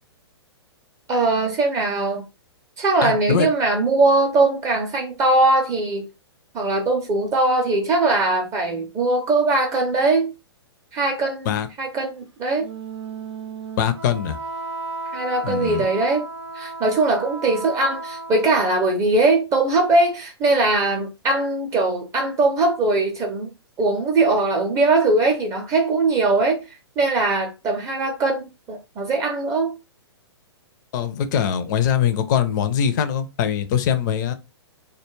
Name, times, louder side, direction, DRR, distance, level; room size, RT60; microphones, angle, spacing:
voice 1, 1.1-2.2 2.8-6.1 6.5-10.3 10.9-11.5 11.8-12.7 15.1-16.3 16.5-23.5 23.8-26.6 27.0-29.7, right 2 dB, 20° right, 0.4 m, -20 dB
voice 2, 3.0-3.5 11.4-11.7 13.8-14.4 15.4-15.9 30.9-34.3, left 8 dB, 45° left, 0.4 m, -22 dB
Wind instrument woodwind instrument, 12.6-18.8, right 3 dB, 90° right, 0.6 m, -34 dB
2.2 x 2.1 x 3.1 m
figure-of-eight pair, 115°, 14 cm